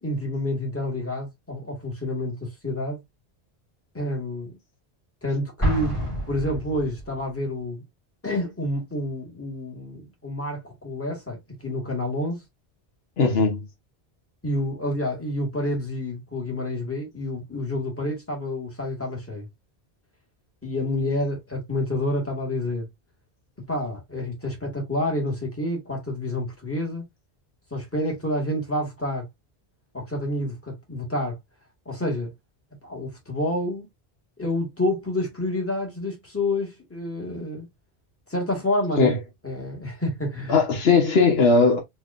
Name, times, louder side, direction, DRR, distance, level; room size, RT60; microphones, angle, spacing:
voice 1, 0.0-3.0 3.9-4.6 5.2-6.0 6.3-7.8 8.2-12.4 14.4-19.5 20.6-22.9 23.6-27.0 27.7-29.3 29.9-31.4 31.8-32.3 32.8-33.9 34.4-37.7 38.3-39.1 39.4-40.6, left 1 dB, 15° left, 1.6 m, -28 dB
Explosion, 5.6-7.3, right 1 dB, 30° left, 2.2 m, -28 dB
voice 2, 13.2-13.7 39.0-39.2 40.5-41.8, left 4 dB, 70° left, 1.1 m, -18 dB
4.5 x 2.8 x 2.4 m
omnidirectional pair, 1.1 m